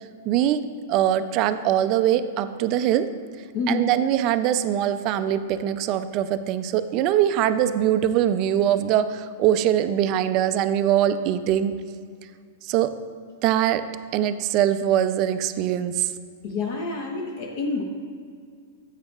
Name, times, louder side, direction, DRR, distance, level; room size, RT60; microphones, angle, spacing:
voice 1, 0.3-3.1 3.7-11.7 12.6-12.9 13.4-13.8 14.1-16.1, right 11 dB, 35° right, 11 dB, 0.3 m, -22 dB
voice 2, 3.5-3.9 16.4-17.8, left 3 dB, 40° left, 2 dB, 0.7 m, -28 dB
10.5 x 8.1 x 2.3 m, 2.1 s
supercardioid pair, 155°, 0 cm